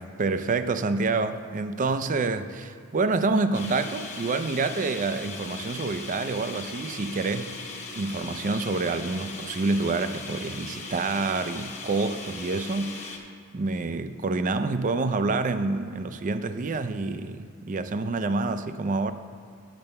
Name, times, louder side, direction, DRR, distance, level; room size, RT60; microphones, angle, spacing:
voice 1, 0.0-7.5 7.9-13.3 13.5-19.1, right 3 dB, 35° right, 11 dB, 0.4 m, -27 dB
sound 1, 3.5-13.2, left 3 dB, 30° left, 1.0 m, -39 dB
9.0 x 5.6 x 6.7 m, 2.4 s
head